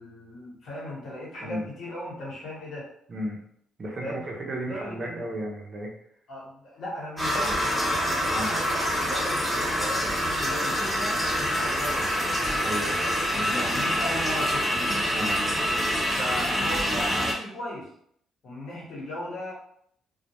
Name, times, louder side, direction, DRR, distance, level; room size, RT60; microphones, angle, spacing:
voice 1, 0.0-2.9 4.0-4.2 4.6-5.2 6.3-12.6 13.3-14.8 16.2-17.9 18.4-19.5, left 1 dB, 65° left, -5 dB, 1.1 m, -37 dB
voice 2, 3.8-5.9 8.2-8.5 12.6-13.7 15.1-15.4, right 1 dB, 45° right, -1 dB, 0.7 m, -34 dB
sound 1, 7.2-17.3, equal, ahead, 0.8 m, -26 dB
2.3 x 2.1 x 2.9 m, 0.68 s
cardioid pair, 90°, 0 cm